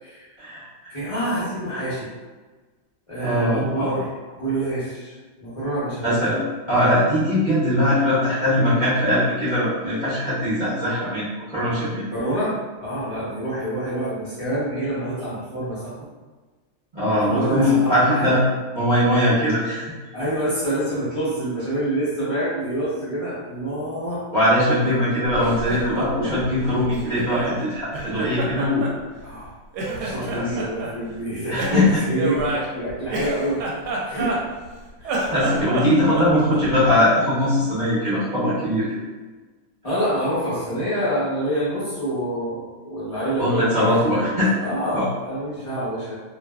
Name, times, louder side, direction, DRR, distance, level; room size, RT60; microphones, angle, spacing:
voice 1, 0.4-1.0 3.2-3.9 6.0-6.4 6.7-11.2 11.5-12.0 16.9-18.4 18.7-19.8 24.3-28.9 30.1-30.5 31.5-32.0 35.3-38.9 43.4-44.5 44.9-45.1, left 1 dB, 55° right, -12 dB, 0.5 m, -21 dB
voice 2, 0.9-2.1 3.1-4.1 4.4-6.3 12.1-16.0 17.2-18.3 20.1-24.2 29.2-29.5 29.8-33.6 34.0-34.3 35.0-35.2 39.8-46.1, right 1 dB, 50° left, -12 dB, 0.3 m, -27 dB
Laughter, 25.3-27.6 27.9-29.5 29.7-30.9 31.6-34.7 35.0-36.9, right 2 dB, 75° right, 1.0 m, -29 dB
2.5 x 2.4 x 2.2 m, 1.3 s
omnidirectional pair, 1.9 m